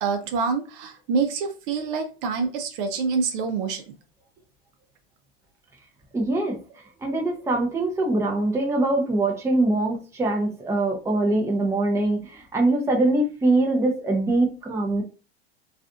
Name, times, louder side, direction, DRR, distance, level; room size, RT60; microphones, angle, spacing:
voice 1, 0.0-3.8, right 5 dB, 55° right, 5 dB, 0.6 m, -26 dB
voice 2, 6.1-6.6 7.0-15.0, right 2 dB, 10° right, -1 dB, 0.6 m, -23 dB
2.4 x 2.4 x 2.4 m, 0.33 s
hypercardioid pair, 105°, 31 cm